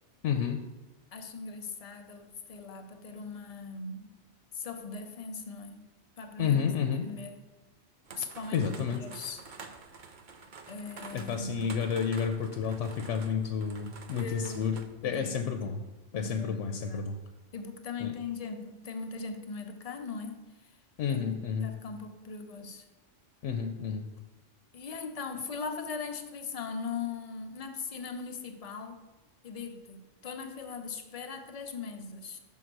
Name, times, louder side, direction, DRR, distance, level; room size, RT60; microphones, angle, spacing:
voice 1, 0.2-0.6 6.4-7.0 8.5-9.0 11.1-14.8 15.0-15.8 16.1-17.1 18.0-18.1 21.0-21.7 23.4-24.1, left 7 dB, 85° left, 6 dB, 0.9 m, -30 dB
voice 2, 1.1-4.1 4.5-5.8 6.2-7.5 8.2-9.5 10.7-11.8 14.1-15.5 16.1-17.2 17.5-20.4 21.1-22.8 24.7-29.0 29.4-32.4, left 4 dB, 40° left, 5 dB, 0.6 m, -40 dB
sound 1, 8.1-14.9, right 5 dB, 50° right, 0.7 m, -48 dB
6.3 x 3.7 x 5.9 m, 1.2 s
omnidirectional pair, 1.2 m